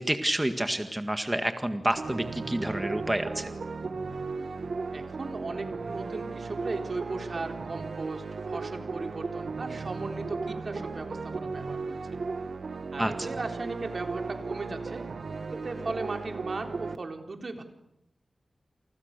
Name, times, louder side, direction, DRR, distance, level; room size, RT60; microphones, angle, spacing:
voice 1, 0.0-3.5 13.0-13.3, right 1 dB, 15° right, 7 dB, 1.9 m, -29 dB
sound 1, 2.0-17.0, right 4 dB, 75° right, 1.7 m, -36 dB
voice 2, 4.9-12.0 12.9-15.1 15.5-17.6, right 3 dB, 60° right, 5 dB, 3.9 m, -37 dB
29.5 x 29.0 x 6.8 m, 0.81 s
wide cardioid pair, 90°, 0 cm